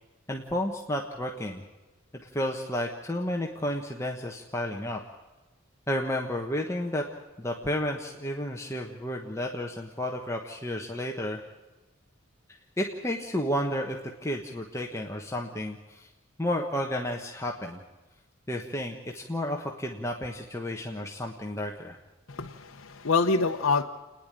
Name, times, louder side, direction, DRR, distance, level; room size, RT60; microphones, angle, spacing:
voice 1, 0.3-1.6 2.3-5.0 5.9-7.0 7.4-11.4 12.8-16.1 16.4-17.8 18.5-22.0, left 1 dB, 15° left, 1 dB, 1.3 m, -32 dB
voice 2, 22.3-23.8, left 4 dB, 70° left, 2 dB, 0.9 m, -26 dB
29.0 x 10.5 x 9.0 m, 1.1 s
head